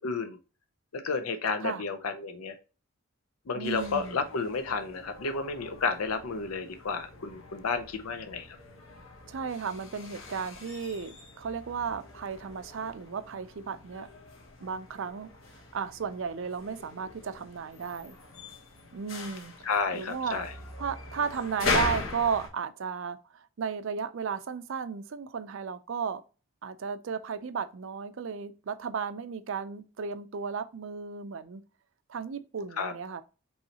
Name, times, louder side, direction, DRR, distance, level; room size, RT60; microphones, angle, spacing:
voice 1, 0.0-0.4 0.9-2.6 3.5-8.6 19.6-20.5 32.8-32.9, left 4 dB, 80° left, 0.6 m, -31 dB
voice 2, 3.5-4.2 9.3-14.1 14.6-18.2 18.9-19.5 19.9-20.4 20.8-26.2 26.6-31.6 32.1-33.2, right 6 dB, 60° right, 0.4 m, -34 dB
sound 1, 3.6-22.5, left 3 dB, 65° left, 1.2 m, -40 dB
5.4 x 3.1 x 2.8 m
head